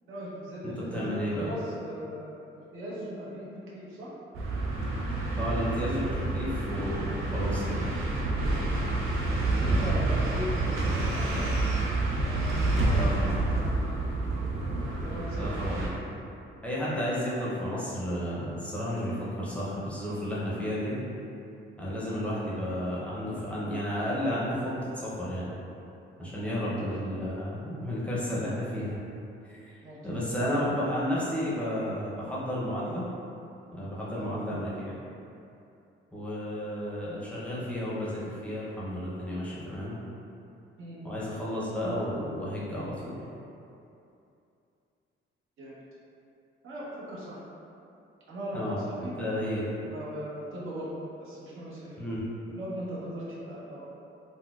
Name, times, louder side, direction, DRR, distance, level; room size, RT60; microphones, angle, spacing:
voice 1, 0.1-4.1 9.5-11.6 11.9-12.8 13.5-13.7 14.8-15.5 26.8-26.9 29.8-30.1 34.2-34.4 40.8-41.0 45.6-45.7 46.6-47.4 48.3-49.1 49.8-50.9 51.2-52.0 52.5-53.9, equal, 70° right, -7 dB, 0.9 m, -39 dB
voice 2, 0.9-1.5 5.4-7.9 12.8-13.5 15.4-16.0 16.6-21.0 21.8-25.5 26.2-29.0 29.5-33.1 33.7-35.0 36.1-40.0 41.0-43.2 48.5-48.8 49.2-49.7 52.0-52.2, equal, 5° left, -8 dB, 0.6 m, -32 dB
sound 1, 4.3-15.9, right 2 dB, 85° right, 0.5 m, -28 dB
3.9 x 2.0 x 2.3 m, 2.7 s
cardioid pair, 145°, 21 cm